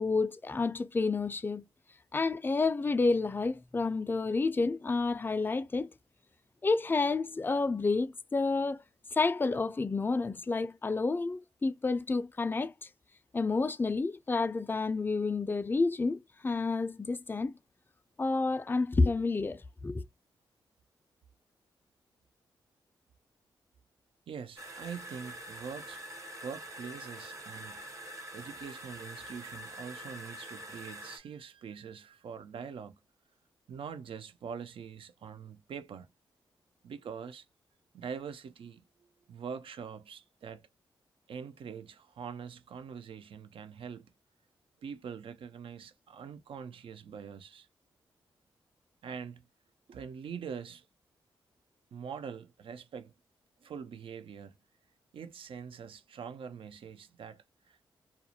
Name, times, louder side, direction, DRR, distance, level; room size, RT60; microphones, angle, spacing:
voice 1, 0.0-1.6 2.1-5.9 6.6-8.8 9.1-12.7 13.3-17.5 18.2-20.0, left 3 dB, 20° left, 0.3 m, -30 dB
voice 2, 24.3-26.0 26.4-27.8 28.3-33.0 33.7-36.1 36.8-37.5 37.9-40.7 41.3-44.1 44.8-47.7 49.0-49.5 49.9-50.9 51.9-53.1 53.6-54.5 55.1-57.9, right 6 dB, 65° right, 0.4 m, -44 dB
sound 1, 24.6-31.2, right 1 dB, 30° right, 0.7 m, -45 dB
2.3 x 2.0 x 2.7 m
supercardioid pair, 45°, 10 cm